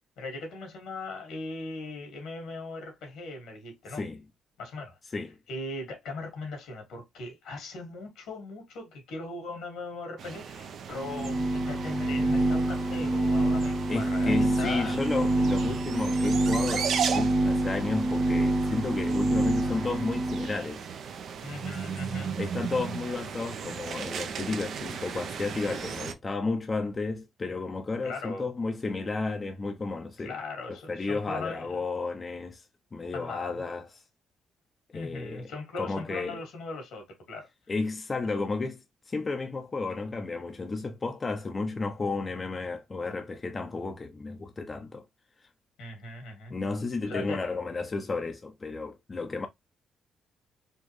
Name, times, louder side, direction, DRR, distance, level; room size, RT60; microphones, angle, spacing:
voice 1, 0.2-4.0 4.6-5.0 5.5-15.7 21.4-22.4 28.0-28.5 30.2-31.8 33.1-33.6 34.9-37.5 45.8-46.6 47.0-47.4, left 3 dB, 85° left, 2.1 m, -39 dB
sound 1, 10.2-26.1, right 7 dB, 65° right, 0.6 m, -36 dB
sound 2, 10.9-20.6, right 1 dB, 15° right, 0.9 m, -27 dB
voice 2, 13.9-20.9 22.4-30.4 30.7-32.6 32.9-34.0 34.9-36.4 37.7-45.0 46.5-49.5, left 3 dB, 30° left, 0.6 m, -32 dB
4.3 x 2.4 x 3.2 m
cardioid pair, 90°, 0 cm